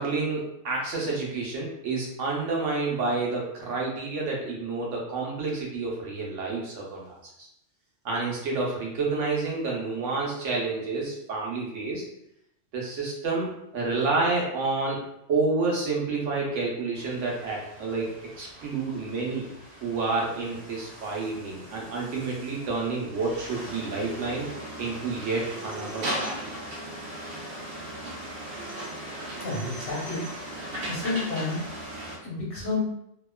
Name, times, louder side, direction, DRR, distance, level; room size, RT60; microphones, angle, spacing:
voice 1, 0.0-7.5 8.0-12.0 12.7-15.0 15.3-19.5 19.8-24.5 24.8-26.5, right 3 dB, 90° right, -3 dB, 1.1 m, -29 dB
sound 1, 17.0-32.2, right 1 dB, 60° right, 0.8 m, -38 dB
voice 2, 29.4-30.2 30.6-31.6 32.2-32.8, left 3 dB, 75° left, -5 dB, 1.3 m, -31 dB
2.8 x 2.2 x 2.2 m, 0.79 s
omnidirectional pair, 1.2 m